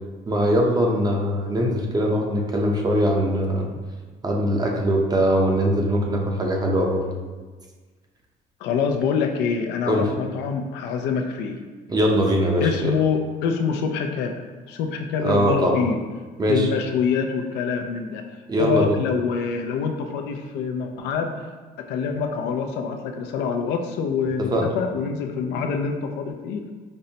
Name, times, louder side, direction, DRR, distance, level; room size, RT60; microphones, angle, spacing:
voice 1, 0.3-3.7 4.2-7.1 9.8-10.1 11.9-13.0 15.2-15.8 16.4-16.7 18.5-19.0 24.5-24.7, equal, 25° right, 0 dB, 0.6 m, -21 dB
voice 2, 8.6-11.6 12.6-14.3 14.7-16.0 16.5-18.2 18.6-21.3 21.8-26.7, left 6 dB, 85° left, 4 dB, 0.4 m, -25 dB
5.2 x 2.0 x 2.7 m, 1.4 s
cardioid pair, 110°, 17 cm